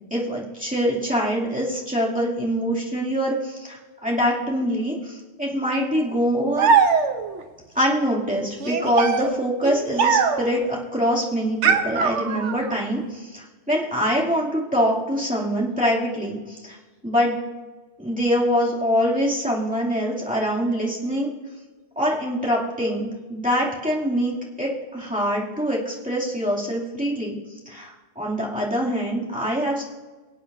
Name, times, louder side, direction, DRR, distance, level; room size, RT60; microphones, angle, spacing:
voice 1, 0.1-6.7 7.7-16.8 17.0-17.4 18.0-21.3 22.0-27.4 27.7-29.8, equal, 5° right, -6 dB, 2.4 m, -24 dB
sound 1, 6.6-7.4 8.6-10.6 11.6-12.7, right 6 dB, 85° right, 1.1 m, -21 dB
24.0 x 8.4 x 2.6 m, 1.2 s
omnidirectional pair, 1.2 m